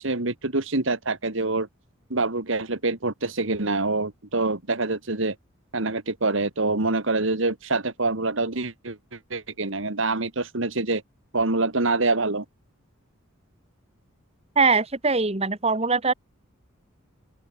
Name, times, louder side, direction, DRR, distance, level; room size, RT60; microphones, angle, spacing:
voice 1, 0.0-1.7 2.1-5.4 5.7-11.0 11.3-12.5, right 3 dB, 65° right, 2.0 m, -25 dB
voice 2, 14.6-16.1, right 4 dB, 30° right, 1.6 m, -22 dB
open air
head